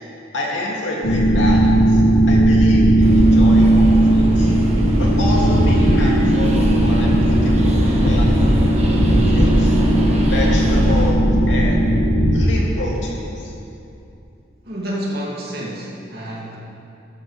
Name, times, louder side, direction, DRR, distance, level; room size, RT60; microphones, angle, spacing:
voice 1, 0.3-4.5 5.0-8.4 8.9-9.8 10.1-11.2 11.5-11.9 12.3-13.5, left 1 dB, 75° left, -3 dB, 2.5 m, -28 dB
sound 1, 1.0-12.4, right 1 dB, 90° left, 1.8 m, -15 dB
Train, 3.0-11.1, equal, 35° right, 1.3 m, -28 dB
voice 2, 14.6-16.6, equal, 50° right, -5 dB, 2.5 m, -29 dB
15.0 x 12.5 x 3.3 m, 2.7 s
head